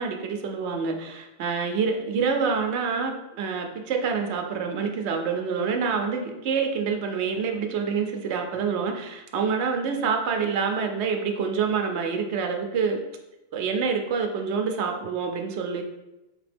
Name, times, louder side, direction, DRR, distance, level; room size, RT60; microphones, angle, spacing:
voice 1, 0.0-13.0 13.5-15.8, right 5 dB, 75° right, 4 dB, 0.9 m, -27 dB
4.5 x 3.0 x 3.3 m, 0.97 s
omnidirectional pair, 1.2 m